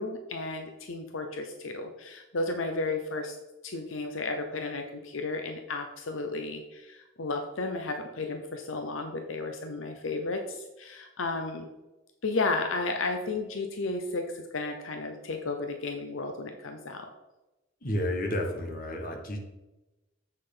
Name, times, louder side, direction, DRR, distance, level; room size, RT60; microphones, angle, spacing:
voice 1, 0.0-3.4 3.6-11.7 12.2-17.1, left 3 dB, 80° left, 5 dB, 0.8 m, -33 dB
voice 2, 17.8-19.4, left 1 dB, 45° left, 3 dB, 1.4 m, -31 dB
7.6 x 6.6 x 3.9 m, 1.0 s
head